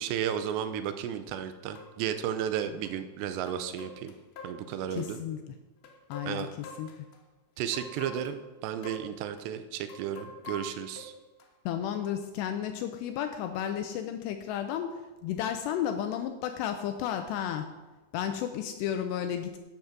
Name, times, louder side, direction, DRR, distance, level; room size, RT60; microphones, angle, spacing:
voice 1, 0.0-4.1 4.4-5.2 6.3-6.5 7.6-11.1, right 9 dB, 85° right, 10 dB, 2.6 m, -33 dB
sound 1, 1.0-1.1 1.8-1.9 2.8-2.9 3.5-5.1 5.8-7.2 7.7-8.4 8.8-9.1 9.4-9.5 9.9-11.5 11.9-12.1, left 2 dB, 65° left, 2.8 m, -45 dB
voice 2, 4.9-5.6 6.1-6.9 11.7-17.7 18.1-19.6, left 9 dB, 85° left, 7 dB, 2.5 m, -33 dB
11.0 x 8.8 x 6.0 m, 1.1 s
omnidirectional pair, 5.5 m